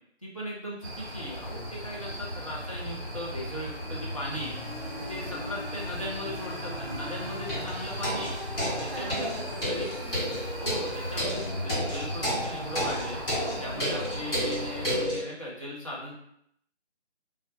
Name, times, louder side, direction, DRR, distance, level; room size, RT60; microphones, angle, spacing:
voice 1, 0.2-4.5 5.1-8.3 8.8-9.3 9.6-10.0 10.6-13.2 13.6-16.1, equal, 30° left, -6 dB, 0.5 m, -38 dB
sound 1, 0.8-15.0, equal, 15° right, 0.8 m, -37 dB
sound 2, 4.3-11.7, left 1 dB, 5° left, 1.0 m, -45 dB
sound 3, 7.5-15.2, equal, 55° left, 1.1 m, -32 dB
voice 2, 8.9-9.7 10.0-10.4 13.4-13.9, right 2 dB, 65° right, 0 dB, 0.5 m, -42 dB
2.3 x 2.2 x 2.5 m, 0.72 s
figure-of-eight pair, 155°, 34 cm